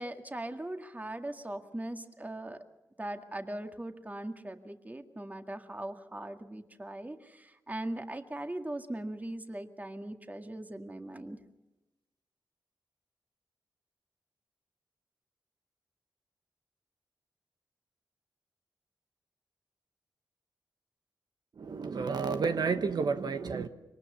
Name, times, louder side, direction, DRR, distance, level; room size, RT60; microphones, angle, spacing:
voice 1, 0.0-2.6 3.0-11.4, right 1 dB, 20° right, 2.0 m, -40 dB
voice 2, 21.6-23.7, right 5 dB, 70° right, 1.1 m, -31 dB
23.5 x 19.0 x 7.0 m
cardioid pair, 50°, 7 cm